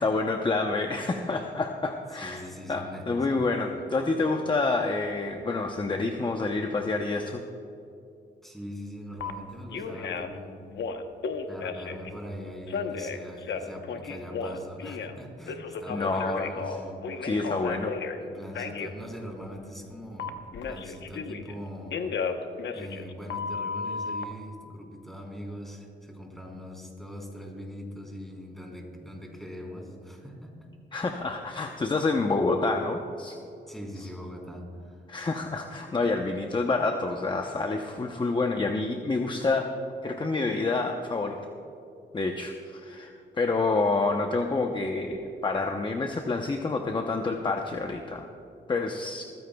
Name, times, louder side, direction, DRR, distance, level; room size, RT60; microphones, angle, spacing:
voice 1, 0.0-7.4 15.9-16.6 17.2-17.9 30.9-33.4 35.1-39.7 40.0-41.4 42.1-48.3 48.7-49.2, left 3 dB, 25° left, 4 dB, 0.8 m, -28 dB
voice 2, 2.2-3.4 8.4-10.7 11.5-17.3 18.2-22.0 22.7-30.7 33.7-35.0, equal, ahead, -1 dB, 3.6 m, -41 dB
Telephone, 9.2-9.3 9.7-10.4 10.7-12.1 12.7-15.2 15.5-18.2 18.5-18.9 20.2-21.6 21.9-24.2, left 5 dB, 75° left, 0.9 m, -33 dB
21.0 x 15.0 x 2.3 m, 2.6 s
cardioid pair, 95°, 19 cm